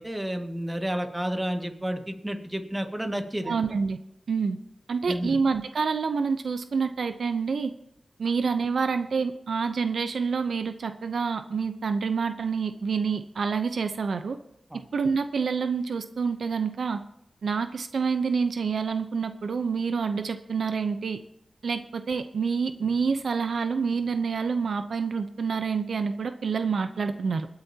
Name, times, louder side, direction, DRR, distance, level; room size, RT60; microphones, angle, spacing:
voice 1, 0.0-3.7 5.0-5.4 14.7-14.8, equal, 15° right, 5 dB, 1.8 m, -31 dB
voice 2, 3.5-4.0 4.3-4.6 4.9-7.7 8.2-14.4 14.9-17.0 17.4-21.2 21.6-27.5, right 5 dB, 90° right, 9 dB, 0.7 m, -27 dB
25.0 x 9.7 x 2.9 m, 0.79 s
cardioid pair, 55°, 0 cm